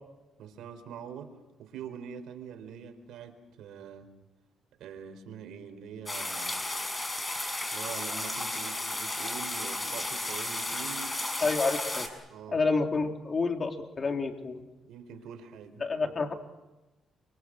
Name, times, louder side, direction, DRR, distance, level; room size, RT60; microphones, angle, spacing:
voice 1, 0.4-4.1 4.8-6.6 7.7-11.2 12.3-12.6 14.9-16.1, right 7 dB, 80° right, 6 dB, 4.3 m, -44 dB
sound 1, 6.1-12.1, left 2 dB, 20° left, 6.4 m, -33 dB
voice 2, 11.4-12.1 12.5-14.6 15.8-16.3, left 4 dB, 35° left, 4 dB, 3.6 m, -29 dB
29.0 x 26.0 x 6.5 m, 1.1 s
cardioid pair, 90°, 0 cm